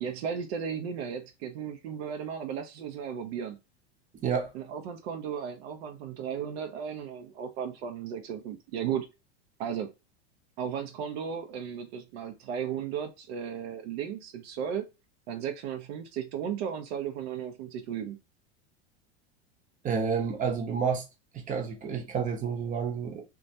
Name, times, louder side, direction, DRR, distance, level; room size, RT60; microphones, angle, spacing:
voice 1, 0.0-3.6 4.5-9.1 9.6-9.9 10.6-14.9 15.3-18.2, right 8 dB, 65° right, 0.5 m, -35 dB
voice 2, 4.1-4.5 19.8-21.1 21.3-23.2, right 6 dB, 25° right, 0.7 m, -30 dB
2.2 x 2.1 x 2.7 m
hypercardioid pair, 105°, 34 cm